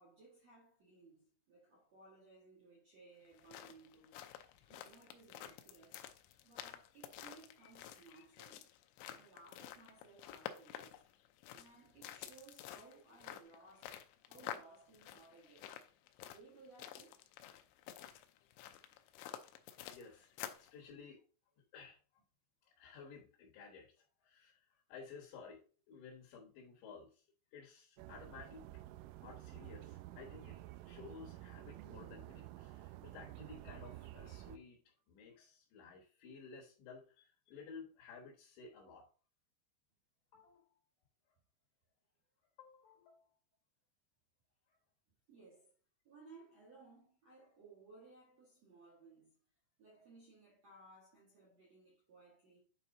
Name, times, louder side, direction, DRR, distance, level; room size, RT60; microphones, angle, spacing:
voice 1, 0.0-4.2 4.6-6.1 6.4-8.7 9.1-11.0 11.5-15.7 16.3-17.2 45.3-45.7 46.0-49.4 49.8-52.6, right 3 dB, 65° right, 1.6 m, -61 dB
sound 1, 3.2-20.7, left 12 dB, 90° left, 2.6 m, -51 dB
voice 2, 19.9-20.3 20.6-21.2 21.7-22.0 22.6-27.2 27.5-28.8 29.2-39.1 40.3-40.7 42.6-43.3 44.7-44.8, left 5 dB, 70° left, 3.2 m, -55 dB
sound 2, 28.0-34.6, right 16 dB, 85° right, 2.9 m, -51 dB
9.0 x 4.3 x 3.8 m
omnidirectional pair, 5.8 m